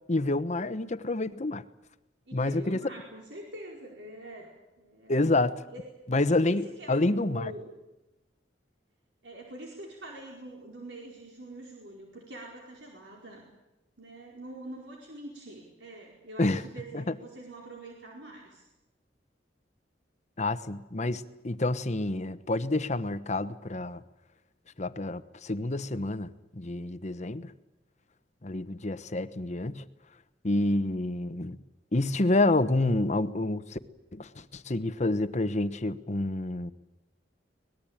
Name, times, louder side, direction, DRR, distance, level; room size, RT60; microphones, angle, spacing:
voice 1, 0.1-1.6 2.3-2.8 5.1-5.6 6.1-7.5 16.4-16.6 16.9-17.0 20.4-24.0 24.8-27.5 28.4-29.8 30.4-31.6 31.9-33.8 34.1-36.7, left 2 dB, 40° left, 13 dB, 1.1 m, -28 dB
voice 2, 2.3-4.5 4.8-5.2 5.7-5.9 6.4-7.7 9.2-13.4 14.0-18.6, right 1 dB, 75° right, -1 dB, 4.7 m, -44 dB
24.5 x 20.0 x 9.0 m, 0.99 s
head